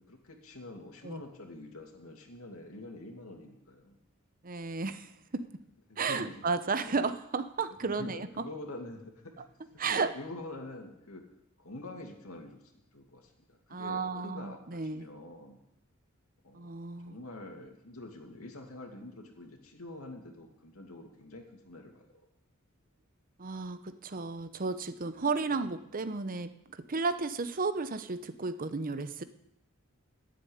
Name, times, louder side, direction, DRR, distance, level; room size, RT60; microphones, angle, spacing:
voice 1, 0.0-4.0 5.9-6.4 6.8-6.9 7.7-11.2 11.6-15.6 16.4-22.2 25.4-25.7, left 2 dB, 90° left, 3 dB, 2.6 m, -46 dB
voice 2, 4.4-5.6 6.0-8.3 9.8-10.1 13.7-15.1 16.5-17.2 23.4-29.2, right 4 dB, 40° right, 11 dB, 0.8 m, -33 dB
13.5 x 7.8 x 9.6 m, 0.85 s
head